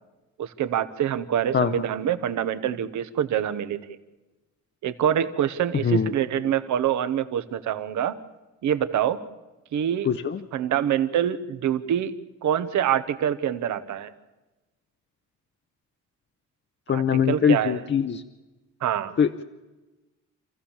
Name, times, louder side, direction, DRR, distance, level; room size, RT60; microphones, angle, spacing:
voice 1, 0.4-3.8 4.8-8.2 8.6-9.2 9.7-10.1 10.5-12.1 12.4-14.1 16.9-17.8 18.8-19.1, right 9 dB, 75° right, 12 dB, 1.2 m, -25 dB
voice 2, 10.1-10.4 16.9-18.2 19.2-19.4, left 7 dB, 40° left, 8 dB, 0.7 m, -22 dB
27.5 x 14.5 x 7.2 m, 1.1 s
cardioid pair, 90°, 30 cm